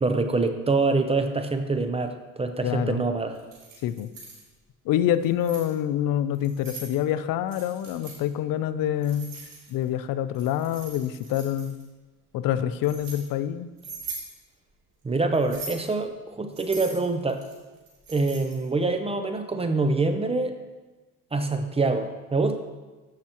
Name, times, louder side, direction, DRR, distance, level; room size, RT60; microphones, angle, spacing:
voice 1, 0.0-3.4 15.0-17.5 18.1-20.6 21.3-22.6, right 3 dB, 15° right, 7 dB, 0.6 m, -25 dB
voice 2, 2.6-3.0 3.8-4.1 4.9-9.4 9.7-11.8 12.3-13.7, left 11 dB, 70° left, 13 dB, 0.6 m, -26 dB
Keys jangling, 3.3-4.4 5.1-5.7 6.3-6.9 7.5-8.2 9.0-9.9 10.3-11.8 12.5-13.2 13.8-14.3 15.3-15.9 16.5-18.7, right 4 dB, 70° right, 2.8 m, -41 dB
14.5 x 5.8 x 3.0 m, 1.2 s
cardioid pair, 115°, 34 cm